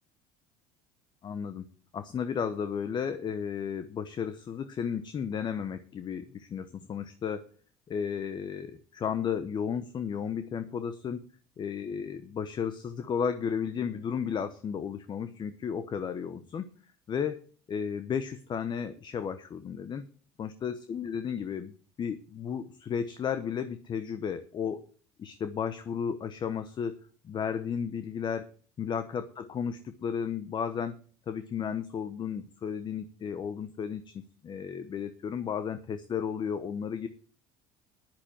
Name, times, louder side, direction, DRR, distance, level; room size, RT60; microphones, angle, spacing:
voice 1, 1.2-7.5 7.9-11.2 11.6-16.7 17.1-20.0 20.4-21.7 22.0-24.8 25.2-27.0 27.2-28.5 28.8-31.0 31.3-37.1, left 7 dB, 40° left, 11 dB, 1.0 m, -33 dB
10.5 x 6.1 x 8.9 m, 0.41 s
supercardioid pair, 85°, 12 cm